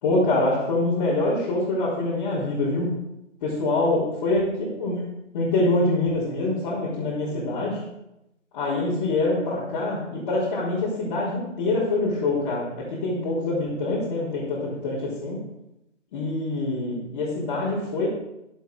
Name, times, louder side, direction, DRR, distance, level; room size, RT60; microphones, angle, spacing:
voice 1, 0.0-2.9 3.4-5.0 5.3-7.8 8.5-15.4 16.1-18.1, left 2 dB, 30° left, -11 dB, 3.8 m, -25 dB
11.0 x 8.1 x 4.9 m, 0.87 s
figure-of-eight pair, 145°, 38 cm